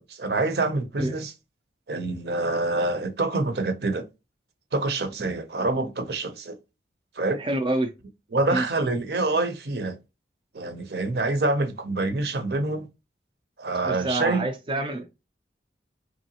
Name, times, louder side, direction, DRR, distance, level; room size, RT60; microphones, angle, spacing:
voice 1, 0.0-1.3 1.9-4.1 4.7-6.6 7.2-7.4 8.3-10.0 10.5-12.9 13.6-14.4, right 2 dB, 65° right, 0.7 m, -26 dB
voice 2, 7.4-7.9 8.5-8.6 13.9-15.1, right 1 dB, 30° right, 0.4 m, -27 dB
3.9 x 3.1 x 2.8 m
head